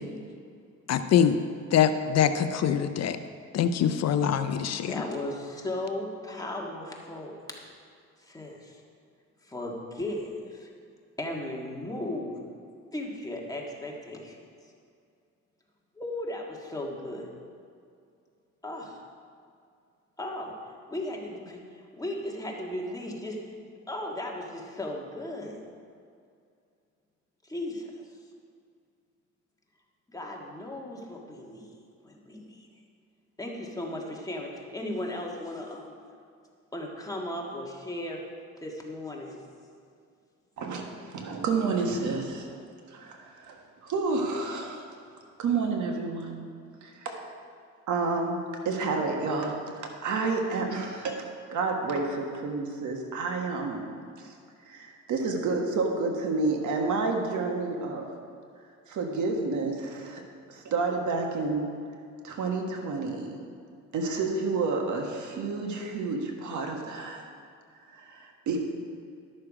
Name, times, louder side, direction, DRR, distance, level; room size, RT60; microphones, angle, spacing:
voice 1, 0.9-1.4 1.7-3.2 3.5-4.9, left 8 dB, 60° left, 10 dB, 0.6 m, -24 dB
voice 2, 4.9-7.4 8.2-8.8 9.4-10.7 11.2-12.4 12.9-14.5 16.0-17.3 18.6-19.0 20.2-20.5 20.9-23.5 23.9-25.6 27.4-28.1 30.1-32.7 33.4-36.0 36.7-38.2 38.6-39.4, left 1 dB, 10° left, -1 dB, 1.7 m, -36 dB
voice 3, 40.6-42.5 42.9-44.8 45.4-46.4 46.8-47.3 47.9-51.2 51.5-53.9 54.6-58.0 58.9-60.2 60.5-61.7 62.2-63.4 63.9-67.2 67.9-68.6, right 3 dB, 75° right, 2 dB, 1.5 m, -30 dB
11.5 x 6.6 x 4.9 m, 2.3 s
cardioid pair, 90°, 30 cm